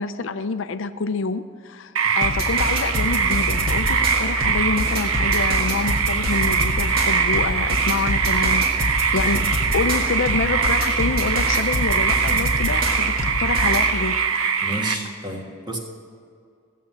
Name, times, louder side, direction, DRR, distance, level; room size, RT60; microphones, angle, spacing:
voice 1, 0.0-14.2, left 4 dB, 65° left, 11 dB, 0.5 m, -27 dB
sound 1, 2.0-15.0, right 6 dB, 85° right, 0.9 m, -22 dB
sound 2, 2.2-13.9, equal, 45° right, 1.8 m, -26 dB
voice 2, 14.6-15.8, right 1 dB, 20° right, 1 dB, 1.6 m, -30 dB
15.5 x 7.5 x 7.4 m, 2.3 s
head